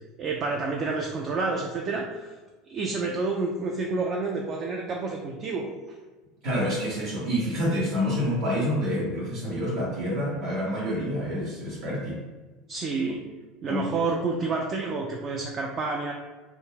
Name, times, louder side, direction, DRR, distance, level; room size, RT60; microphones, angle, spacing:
voice 1, 0.2-2.3 2.7-5.7 12.7-13.2 13.6-16.1, right 3 dB, 40° right, 0 dB, 0.3 m, -29 dB
voice 2, 6.4-12.2 13.7-14.1, equal, 65° right, -7 dB, 0.8 m, -28 dB
2.3 x 2.1 x 3.2 m, 1.3 s
hypercardioid pair, 80°, 0 cm